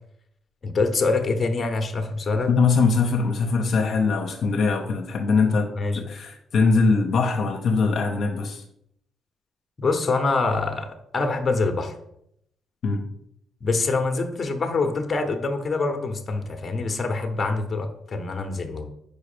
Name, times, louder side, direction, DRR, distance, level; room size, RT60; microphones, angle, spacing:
voice 1, 0.6-2.5 5.8-6.0 9.8-11.9 13.6-18.9, left 3 dB, 35° left, 6 dB, 1.0 m, -25 dB
voice 2, 2.5-8.6 12.8-13.0, left 4 dB, 60° left, 3 dB, 0.8 m, -22 dB
5.1 x 4.8 x 5.1 m, 0.74 s
cardioid pair, 90°, 0 cm